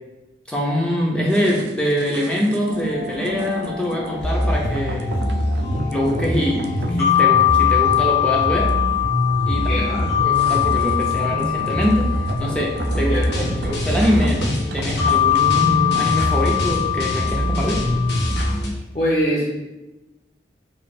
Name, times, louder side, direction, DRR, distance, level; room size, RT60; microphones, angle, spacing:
voice 1, 0.5-5.1 5.9-8.7 9.5-9.7 10.2-14.4 14.7-17.8, equal, 5° left, -3 dB, 0.5 m, -23 dB
sound 1, 1.3-18.5 18.8-18.9, right 3 dB, 70° right, 0.3 m, -36 dB
sound 2, 2.7-18.5, left 11 dB, 60° left, 1.4 m, -23 dB
sound 3, 4.2-18.7, equal, 80° left, 0.8 m, -24 dB
voice 2, 9.7-10.1 12.9-13.5 18.9-19.5, equal, 40° left, -8 dB, 0.7 m, -23 dB
3.1 x 2.4 x 4.1 m, 1.0 s
head